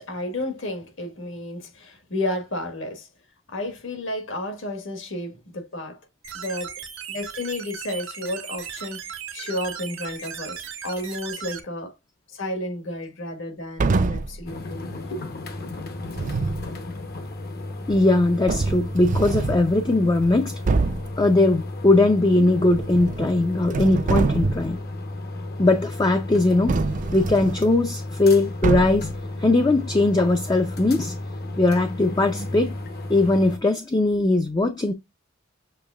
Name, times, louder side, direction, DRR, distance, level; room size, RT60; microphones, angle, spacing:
voice 1, 0.0-3.1 3.5-6.0 6.3-6.7 7.1-9.0 9.3-11.9 12.3-15.2, left 1 dB, 65° left, 1.5 m, -32 dB
sound 1, 6.2-11.6, right 8 dB, 75° right, 1.4 m, -37 dB
sound 2, 13.8-14.4 16.0-16.7 17.9-18.0 18.5-19.7 20.2-20.3 20.7-21.1 22.7-23.4 23.7-24.8 26.7-27.6 28.6-29.2, right 3 dB, 40° right, 0.4 m, -25 dB
sound 3, 14.4-33.6, left 2 dB, 50° left, 0.9 m, -34 dB
voice 2, 17.9-20.6 21.2-24.8 25.6-26.8 27.1-29.1 29.4-31.1 31.6-32.7 33.1-34.9, left 2 dB, 20° left, 0.4 m, -20 dB
6.7 x 3.1 x 2.3 m
head